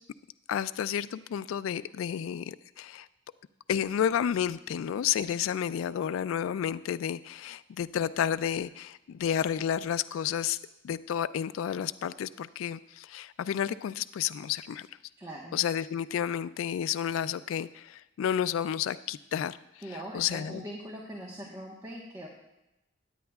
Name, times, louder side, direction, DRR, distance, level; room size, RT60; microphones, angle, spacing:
voice 1, 0.5-3.1 3.7-10.6 10.8-14.9 15.5-19.8 20.1-20.6, left 9 dB, 85° left, 16 dB, 0.3 m, -31 dB
voice 2, 15.2-15.6 19.8-22.3, equal, 20° right, -3 dB, 1.2 m, -41 dB
16.5 x 10.5 x 2.3 m, 0.92 s
head